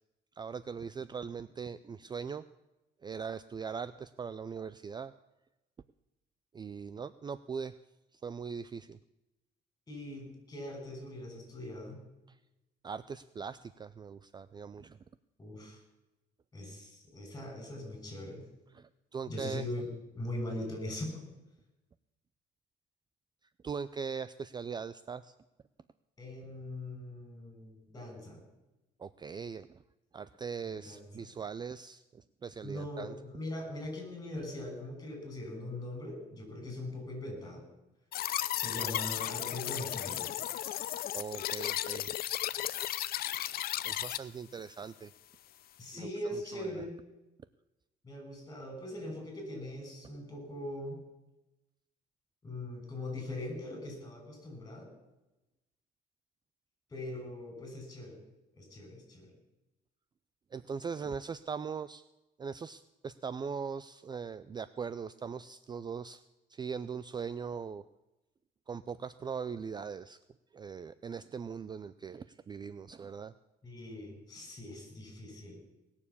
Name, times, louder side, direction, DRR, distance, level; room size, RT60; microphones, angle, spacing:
voice 1, 0.4-2.4 3.0-5.1 6.5-7.8 8.1-9.0 12.3-12.4 12.8-15.0 18.7-19.6 23.6-25.3 29.0-29.8 30.1-33.2 41.1-42.1 43.3-45.1 45.9-46.7 60.5-62.0 62.4-66.2 66.5-67.8 68.7-70.2 70.5-73.3, right 6 dB, 25° right, 15 dB, 0.5 m, -40 dB
voice 2, 9.9-12.0 15.4-15.8 16.5-18.5 19.3-21.2 26.2-28.4 30.6-31.3 32.6-37.6 38.5-40.5 45.8-46.9 48.0-51.0 52.4-54.9 56.9-58.2 58.5-59.3 73.6-75.6, left 1 dB, 20° left, 3 dB, 6.6 m, -41 dB
sound 1, 38.1-44.2, left 13 dB, 60° left, 0.7 m, -35 dB
19.5 x 7.2 x 8.5 m, 1.0 s
cardioid pair, 110°, 17 cm